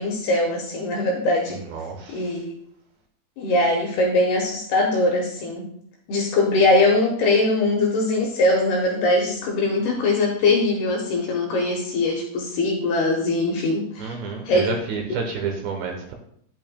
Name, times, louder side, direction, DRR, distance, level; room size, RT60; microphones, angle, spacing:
voice 1, 0.0-1.6 2.1-2.5 3.4-5.7 6.1-14.2 14.5-14.7, left 2 dB, 70° left, -1 dB, 2.6 m, -21 dB
voice 2, 1.7-2.3 14.0-16.1, right 5 dB, 75° right, 2 dB, 2.9 m, -29 dB
11.0 x 9.0 x 2.2 m, 0.66 s
omnidirectional pair, 5.7 m